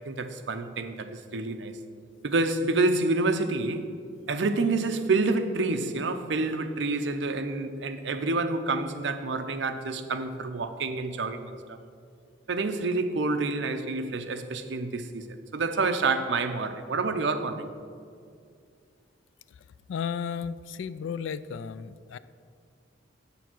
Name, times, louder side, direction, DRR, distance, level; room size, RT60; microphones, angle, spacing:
voice 1, 0.0-1.8 2.2-3.9 4.3-11.8 12.5-15.3 15.5-17.7, right 3 dB, 65° right, 9 dB, 0.6 m, -28 dB
voice 2, 19.9-22.2, left 6 dB, 75° left, 16 dB, 0.3 m, -34 dB
7.1 x 6.9 x 6.0 m, 2.3 s
head